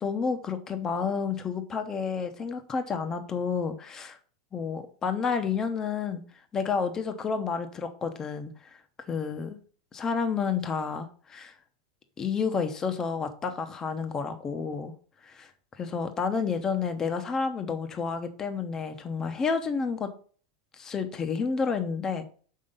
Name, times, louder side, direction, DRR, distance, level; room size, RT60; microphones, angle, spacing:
voice 1, 0.0-4.2 4.5-6.2 6.5-8.5 9.1-9.6 9.9-11.5 12.2-14.9 15.2-15.5 15.8-20.1 20.8-22.2, left 5 dB, 15° left, 7 dB, 0.8 m, -30 dB
6.5 x 5.6 x 5.2 m, 0.42 s
supercardioid pair, 160°, 3 cm